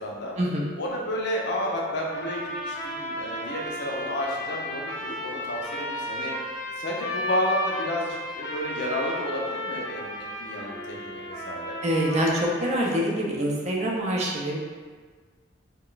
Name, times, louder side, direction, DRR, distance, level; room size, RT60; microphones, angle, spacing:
voice 1, 0.0-0.3 0.8-6.3 6.8-11.8, left 1 dB, 65° left, -1 dB, 0.5 m, -31 dB
sound 1, 2.0-13.1, left 1 dB, 20° left, 0.7 m, -34 dB
voice 2, 11.8-14.6, equal, 35° right, -2 dB, 0.4 m, -25 dB
2.3 x 2.1 x 3.8 m, 1.5 s
head